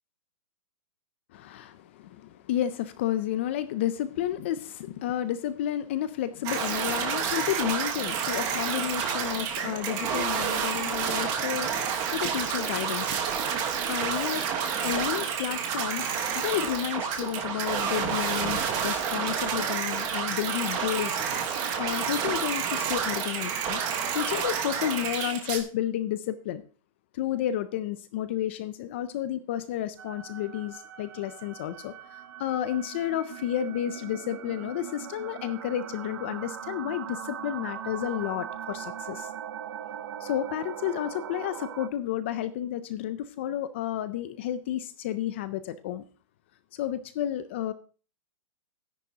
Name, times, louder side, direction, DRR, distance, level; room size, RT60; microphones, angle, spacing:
voice 1, 1.3-13.2 13.9-14.5 14.8-21.4 21.8-26.6 27.1-39.3 40.2-46.0 46.7-47.7, left 11 dB, 20° left, 13 dB, 0.4 m, -31 dB
sound 1, 6.4-25.6, right 7 dB, 20° right, 1.3 m, -29 dB
sound 2, 30.0-41.9, right 9 dB, 45° right, 0.8 m, -40 dB
13.0 x 10.0 x 2.8 m, 0.37 s
hypercardioid pair, 170°, 17 cm